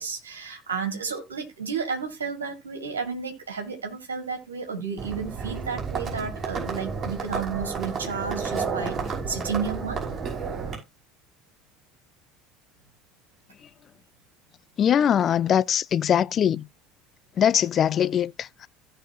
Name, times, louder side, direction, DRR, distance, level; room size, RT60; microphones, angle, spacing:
voice 1, 0.0-9.0 9.3-10.0, right 6 dB, 85° right, 1.9 m, -32 dB
Livestock farm animals working animals, 5.0-10.8, right 5 dB, 35° right, 5.8 m, -31 dB
voice 2, 14.8-16.6 17.4-18.7, left 9 dB, 40° left, 0.5 m, -22 dB
16.5 x 5.6 x 2.7 m
figure-of-eight pair, 65°, 0 cm